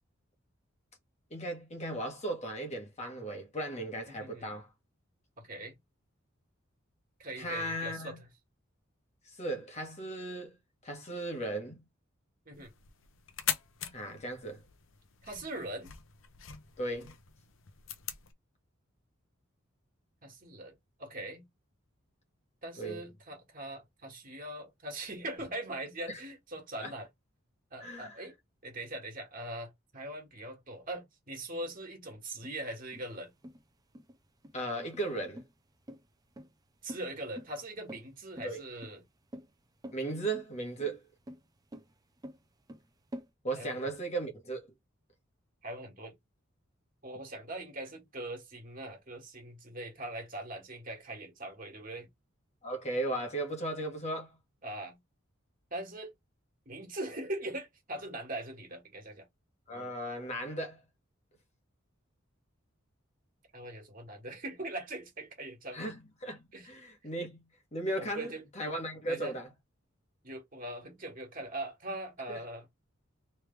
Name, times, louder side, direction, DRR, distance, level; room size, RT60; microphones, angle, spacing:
voice 1, 1.3-4.7 7.4-8.2 9.3-10.6 10.8-11.8 13.9-14.6 16.8-17.2 22.8-23.0 26.1-26.2 26.8-26.9 27.8-28.2 34.5-35.4 38.4-38.6 39.9-41.0 43.4-44.7 52.6-54.4 59.7-60.8 65.7-67.4 67.7-69.5 72.3-72.4, right 1 dB, 35° left, 1.3 m, -36 dB
voice 2, 4.1-4.6 5.4-5.8 7.2-8.3 12.5-12.7 15.2-15.9 20.2-21.5 22.6-27.1 27.7-28.3 28.6-33.3 36.8-39.0 43.6-43.9 45.6-46.1 47.0-52.1 54.6-55.0 55.7-56.1 56.7-59.3 63.5-65.9 66.5-66.7 68.0-68.4 69.1-69.4 70.2-72.7, right 1 dB, 45° right, 1.7 m, -41 dB
sound 1, 12.5-18.3, left 9 dB, 70° left, 0.7 m, -41 dB
sound 2, 32.4-43.3, equal, 20° right, 0.5 m, -48 dB
3.3 x 3.2 x 3.3 m
head